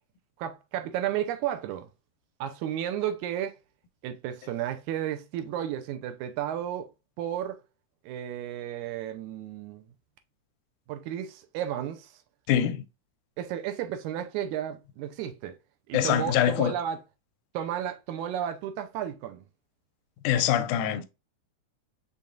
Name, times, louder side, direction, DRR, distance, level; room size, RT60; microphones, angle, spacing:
voice 1, 0.4-1.9 2.4-3.6 4.0-6.9 7.2-7.6 8.1-9.8 10.9-12.1 13.4-15.6 15.9-17.0 17.5-19.4, right 10 dB, 80° right, 1.9 m, -33 dB
voice 2, 12.5-12.8 15.9-16.7 20.2-21.0, left 10 dB, 80° left, 2.0 m, -24 dB
5.4 x 3.5 x 2.4 m
omnidirectional pair, 3.6 m